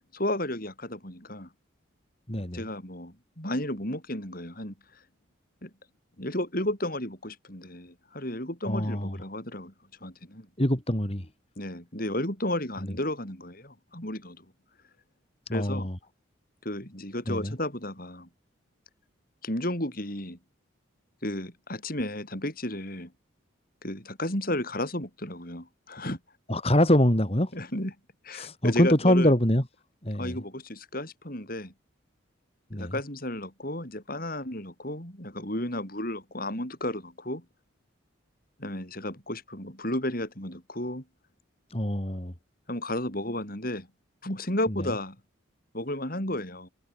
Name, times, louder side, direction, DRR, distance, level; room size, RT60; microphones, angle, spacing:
voice 1, 0.1-1.5 2.5-5.0 5.6-5.7 6.2-9.7 10.0-10.5 11.6-14.4 15.5-15.9 16.6-18.3 19.4-20.4 21.2-23.1 23.8-26.2 27.5-27.9 28.2-29.3 30.2-31.7 32.7-37.4 38.6-41.0 42.7-43.9 44.2-45.2 45.7-46.7, left 1 dB, 45° left, 7.6 m, -33 dB
voice 2, 2.3-2.6 8.7-9.2 10.6-11.3 12.8-12.9 15.5-16.0 17.3-17.5 26.5-27.5 28.3-29.6 30.0-30.4 32.7-32.9 41.7-42.3 44.7-44.9, left 1 dB, 30° left, 3.0 m, -24 dB
head